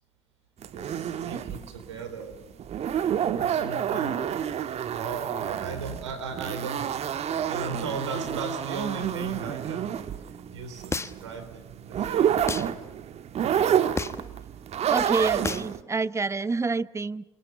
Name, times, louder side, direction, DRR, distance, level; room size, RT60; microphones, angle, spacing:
sound 1, 0.6-15.8, right 9 dB, 45° right, 1.6 m, -29 dB
voice 1, 0.7-2.6 3.2-4.3 4.9-7.1 7.5-10.0 10.5-12.4, right 4 dB, 85° right, 9 dB, 4.0 m, -37 dB
sound 2, 10.9-11.4 12.5-12.7 14.0-14.3 15.4-15.7, left 3 dB, 20° left, 1.2 m, -31 dB
voice 2, 14.9-17.2, right 4 dB, 20° right, 17 dB, 0.9 m, -28 dB
28.0 x 26.5 x 5.9 m, 0.92 s
hypercardioid pair, 65°, 15 cm